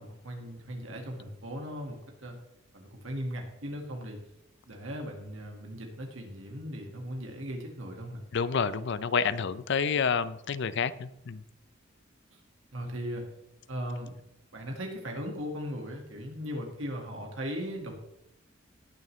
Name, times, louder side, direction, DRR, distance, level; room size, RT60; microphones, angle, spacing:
voice 1, 0.0-2.4 2.7-4.2 4.7-8.2 12.3-12.4 12.7-13.3 13.7-14.2 14.5-17.9, equal, 70° right, 2 dB, 1.8 m, -38 dB
voice 2, 8.3-11.4, left 6 dB, 60° left, 15 dB, 0.5 m, -29 dB
19.0 x 6.7 x 3.2 m, 0.86 s
head